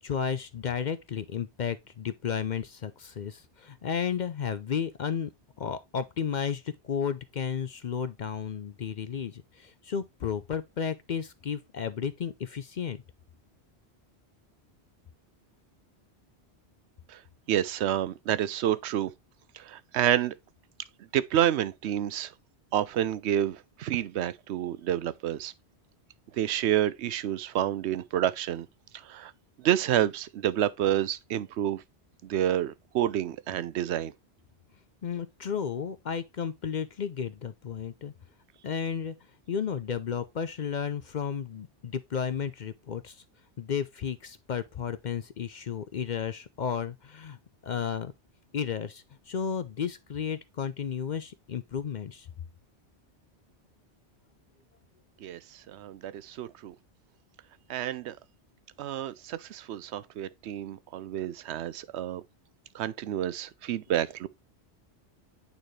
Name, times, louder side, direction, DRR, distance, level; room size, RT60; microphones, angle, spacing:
voice 1, 0.0-5.3 5.6-13.0 35.0-38.1 38.6-39.1 39.5-43.2 43.6-47.4 47.6-48.1 48.5-52.3, left 7 dB, 55° left, 0.6 m, -33 dB
voice 2, 17.5-19.1 19.6-20.3 21.1-22.3 22.7-25.5 26.3-28.7 29.0-29.3 29.6-31.8 32.2-34.1 55.2-55.4 55.7-56.7 57.7-58.2 58.8-62.2 62.7-64.3, right 11 dB, 80° right, 0.8 m, -29 dB
8.9 x 4.1 x 3.2 m
omnidirectional pair, 1.1 m